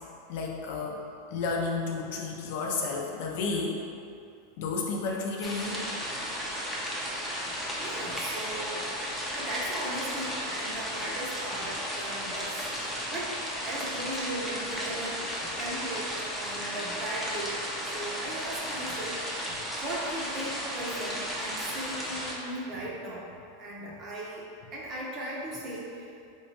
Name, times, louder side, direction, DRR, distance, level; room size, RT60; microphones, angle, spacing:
voice 1, 0.3-1.0 1.3-3.8 4.6-5.8, left 4 dB, 65° left, -1 dB, 0.5 m, -31 dB
sound 1, 5.4-22.3, equal, ahead, 0.6 m, -34 dB
voice 2, 7.8-8.8 9.3-13.4 13.6-16.1 16.4-26.1, right 1 dB, 40° right, -4 dB, 0.7 m, -38 dB
3.3 x 3.0 x 2.8 m, 2.5 s
hypercardioid pair, 115°, 0 cm